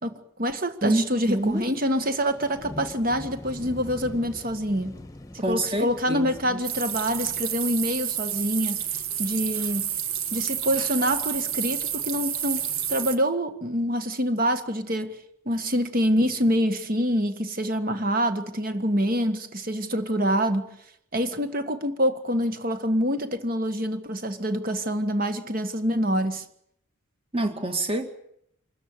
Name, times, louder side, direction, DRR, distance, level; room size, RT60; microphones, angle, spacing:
voice 1, 0.0-5.0 5.3-8.8 9.2-9.9 10.3-15.2 15.4-20.7 21.1-26.4, equal, 40° right, 1.6 m, -26 dB
voice 2, 0.8-1.7 5.4-6.6 27.3-28.1, right 1 dB, 25° right, 2.2 m, -27 dB
sound 1, 1.1-7.5, left 1 dB, 15° left, 1.3 m, -43 dB
sound 2, 6.6-13.2, right 9 dB, 75° right, 1.6 m, -30 dB
26.0 x 14.5 x 9.9 m
head